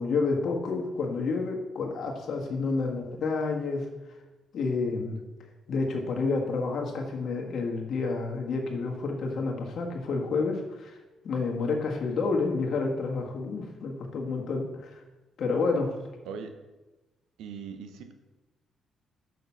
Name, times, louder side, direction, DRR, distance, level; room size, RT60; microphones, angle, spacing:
voice 1, 0.0-3.9 4.5-5.2 5.7-11.0 11.2-15.0 15.4-16.0, left 4 dB, 65° left, 1 dB, 1.6 m, -29 dB
voice 2, 17.4-18.1, right 6 dB, 85° right, 8 dB, 0.8 m, -39 dB
6.5 x 6.2 x 5.6 m, 1.1 s
cardioid pair, 90°, 0 cm